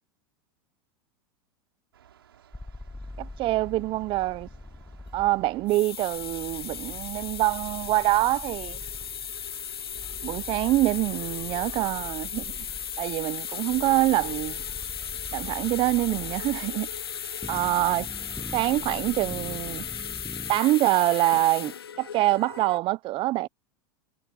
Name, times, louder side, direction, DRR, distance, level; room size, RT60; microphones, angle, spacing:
sound 1, 1.9-19.8, right 10 dB, 80° right, 5.2 m, -59 dB
sound 2, 2.5-20.6, left 2 dB, 5° left, 0.7 m, -44 dB
voice 1, 3.2-4.5 5.1-8.8 10.2-12.4 13.0-14.6 15.3-16.9 17.5-18.1 18.5-19.8 20.5-23.5, right 17 dB, 45° right, 0.8 m, -25 dB
sound 3, 5.5-22.8, left 8 dB, 90° left, 0.8 m, -36 dB
hypercardioid pair, 95°, 12 cm